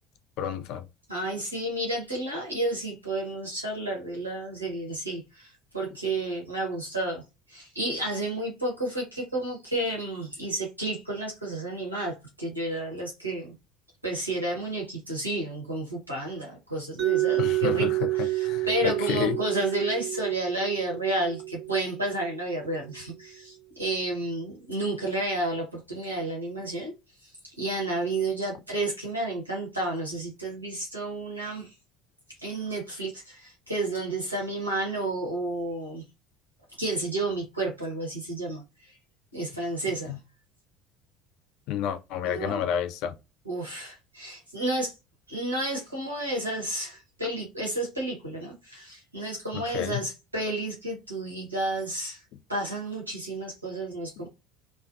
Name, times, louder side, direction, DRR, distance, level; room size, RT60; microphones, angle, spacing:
voice 1, 0.4-0.8 17.4-17.9 18.4-18.7 19.1-19.4 40.1-40.2 41.7-43.1 49.7-50.0, left 9 dB, 55° left, 0.4 m, -29 dB
voice 2, 1.1-13.5 14.0-26.9 27.2-31.7 32.4-36.0 36.8-39.0 39.3-40.2 42.2-42.6 43.4-45.0 45.3-54.3, right 2 dB, 85° right, 0.7 m, -31 dB
Mallet percussion, 17.0-22.8, right 18 dB, 45° right, 0.6 m, -29 dB
2.5 x 2.2 x 2.4 m
figure-of-eight pair, 60°, 0 cm